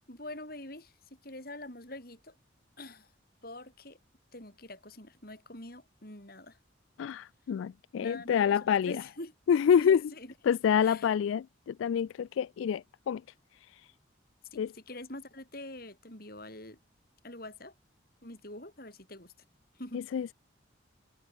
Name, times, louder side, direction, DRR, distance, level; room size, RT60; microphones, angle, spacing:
voice 1, 0.1-2.4 2.8-3.1 3.4-4.0 4.3-6.6 8.0-9.4 9.8-10.3 10.8-11.1 14.5-16.8 17.2-17.7 18.2-19.3 19.8-20.0, left 1 dB, 50° left, 7.4 m, -45 dB
voice 2, 7.0-9.0 9.5-10.0 10.5-13.2 14.6-14.7 19.9-20.3, left 8 dB, 85° left, 0.3 m, -27 dB
head